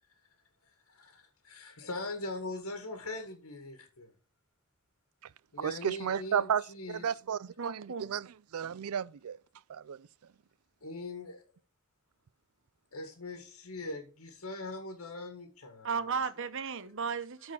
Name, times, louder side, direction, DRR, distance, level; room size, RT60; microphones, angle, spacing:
voice 1, 0.9-4.1 5.5-7.1 10.8-11.4 12.9-16.1, left 2 dB, 75° left, 1.8 m, -41 dB
voice 2, 5.6-6.6 7.0-8.3 8.5-9.4 9.7-10.0, right 8 dB, 85° right, 0.4 m, -32 dB
voice 3, 7.6-8.1 15.8-17.5, right 5 dB, 65° right, 1.0 m, -35 dB
12.5 x 4.5 x 6.0 m
head